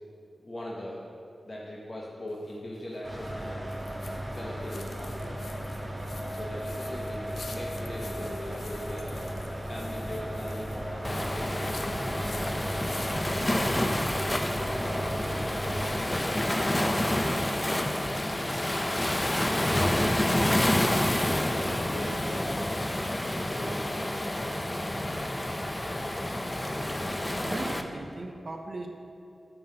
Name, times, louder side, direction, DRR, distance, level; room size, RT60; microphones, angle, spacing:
voice 1, 0.4-1.0 1.4-3.7 4.3-5.5 6.3-9.3 9.7-12.6 13.2-14.0 14.4-16.0 16.3-17.8 19.5-22.7 23.3-24.6, left 1 dB, 50° left, -5 dB, 0.8 m, -40 dB
sound 1, 2.3-14.6, left 3 dB, 80° left, 0.5 m, -48 dB
sound 2, 3.0-16.0, equal, 15° right, 0.8 m, -35 dB
Waves surf, 11.0-27.8, left 1 dB, 20° left, 0.4 m, -28 dB
voice 2, 27.4-28.9, right 2 dB, 55° right, 2 dB, 0.4 m, -37 dB
6.9 x 5.4 x 2.7 m, 2.5 s
cardioid pair, 55°, 0 cm